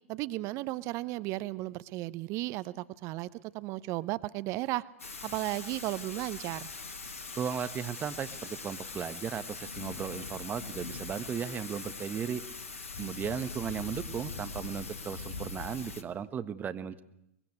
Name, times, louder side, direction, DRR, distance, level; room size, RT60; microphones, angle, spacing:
voice 1, 0.1-3.3 3.5-4.8 5.2-6.7, right 18 dB, 40° right, 17 dB, 0.9 m, -34 dB
Thunder / Rain, 5.0-16.0, left 4 dB, 80° left, 1.8 m, -42 dB
voice 2, 7.4-12.4 13.0-17.0, right 8 dB, 25° right, 11 dB, 1.5 m, -36 dB
23.5 x 21.5 x 8.1 m, 0.78 s
hypercardioid pair, 100°, 7 cm